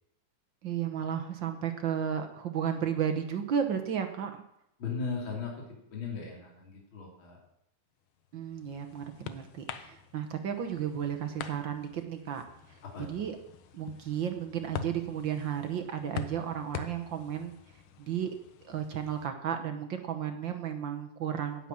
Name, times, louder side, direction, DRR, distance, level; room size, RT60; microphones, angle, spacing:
voice 1, 0.6-4.4 8.3-12.4 12.7-12.8 13.1-13.4 13.7-17.5 18.0-18.3 18.6-21.7, right 8 dB, 65° right, 6 dB, 1.2 m, -33 dB
voice 2, 4.8-7.4 12.8-13.3, left 5 dB, 45° left, -2 dB, 3.6 m, -38 dB
sound 1, 8.2-19.3, left 8 dB, 70° left, 1.3 m, -45 dB
10.5 x 9.0 x 8.7 m, 0.78 s
omnidirectional pair, 3.4 m